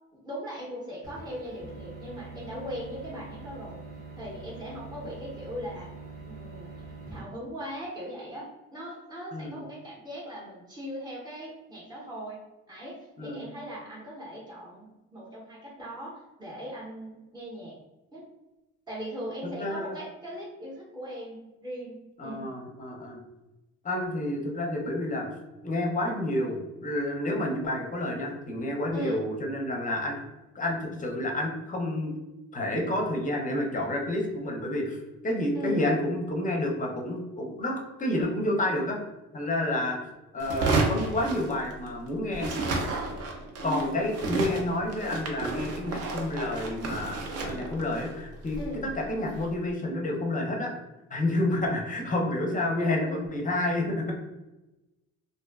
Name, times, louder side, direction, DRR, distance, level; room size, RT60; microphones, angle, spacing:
voice 1, 0.2-3.8 4.2-5.9 6.3-6.7 7.1-8.5 8.7-12.4 12.7-17.8 18.1-18.2 18.9-22.4 28.9-29.3 35.5-35.9 43.6-44.2 48.6-48.8 52.8-53.2, equal, 15° right, -6 dB, 0.6 m, -39 dB
sound 1, 1.0-7.2, right 4 dB, 80° right, 1.1 m, -44 dB
voice 2, 9.3-9.6 13.2-13.4 19.4-20.0 22.2-23.2 23.8-25.3 25.6-30.2 30.5-32.1 32.5-35.0 35.2-39.0 39.3-40.0 40.3-42.5 43.6-50.7 51.1-54.1, left 1 dB, 25° left, 0 dB, 0.5 m, -29 dB
sound 2, 40.4-42.0 42.3-49.5, right 3 dB, 55° right, 0.5 m, -32 dB
2.5 x 2.2 x 2.2 m, 1.0 s
cardioid pair, 90°, 30 cm